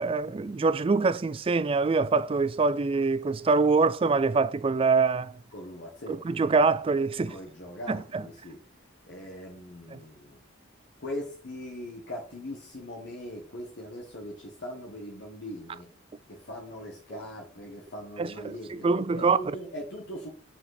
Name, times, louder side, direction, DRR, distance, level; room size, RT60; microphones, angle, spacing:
voice 1, 0.0-5.4 6.1-7.4 7.9-8.2 9.9-10.0 18.2-19.4, right 4 dB, 30° right, 0.3 m, -25 dB
voice 2, 5.5-6.2 7.3-8.6 9.1-10.4 11.0-15.9 16.3-18.9 19.1-20.3, left 1 dB, 60° left, 1.5 m, -40 dB
5.3 x 5.3 x 4.0 m
head